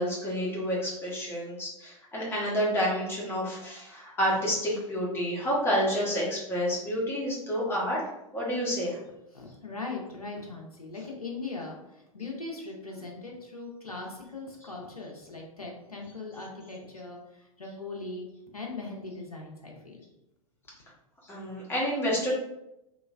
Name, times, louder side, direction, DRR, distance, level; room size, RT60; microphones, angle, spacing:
voice 1, 0.0-8.0 8.3-9.0 21.3-22.3, equal, 10° left, -5 dB, 1.1 m, -29 dB
voice 2, 9.3-18.3 18.5-20.0, left 3 dB, 90° left, -1 dB, 0.7 m, -40 dB
3.2 x 3.0 x 2.4 m, 0.89 s
figure-of-eight pair, 100°, 18 cm